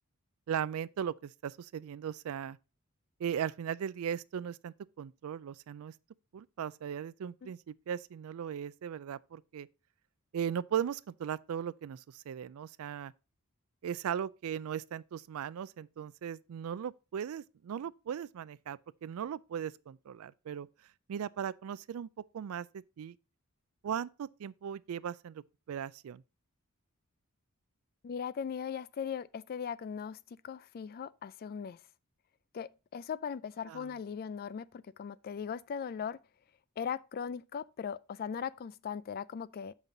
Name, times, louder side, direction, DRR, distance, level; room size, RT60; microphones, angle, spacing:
voice 1, 0.5-2.6 3.2-5.9 6.3-9.7 10.3-13.1 13.8-20.7 21.1-22.1 22.3-23.2 23.8-26.2 33.7-33.9, right 8 dB, 70° right, 0.3 m, -38 dB
voice 2, 28.0-31.8 32.5-36.2 36.8-39.7, left 7 dB, 45° left, 0.3 m, -39 dB
7.4 x 5.4 x 3.8 m
head